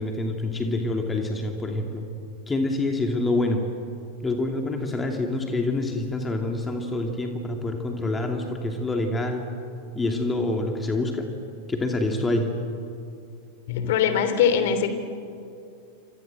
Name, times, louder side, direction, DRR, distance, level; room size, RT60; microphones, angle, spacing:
voice 1, 0.0-2.1 2.5-3.6 4.2-9.5 9.9-11.3 11.7-12.5, left 2 dB, 15° left, 3 dB, 2.7 m, -26 dB
voice 2, 13.7-15.0, left 7 dB, 55° left, 9 dB, 3.0 m, -22 dB
29.0 x 26.0 x 7.8 m, 2.6 s
figure-of-eight pair, 90°, 0 cm